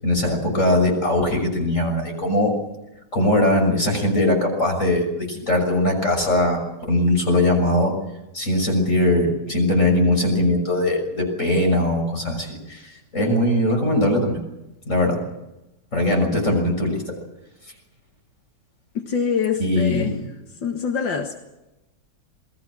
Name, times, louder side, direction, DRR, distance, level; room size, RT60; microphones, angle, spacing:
voice 1, 0.0-2.5 3.1-7.9 8.3-14.4 14.9-15.2 15.9-17.0 19.6-20.2, left 1 dB, 40° left, 6.8 m, -20 dB
voice 2, 18.9-20.2 20.6-21.4, left 6 dB, 85° left, 2.4 m, -25 dB
28.5 x 21.0 x 6.2 m
omnidirectional pair, 2.0 m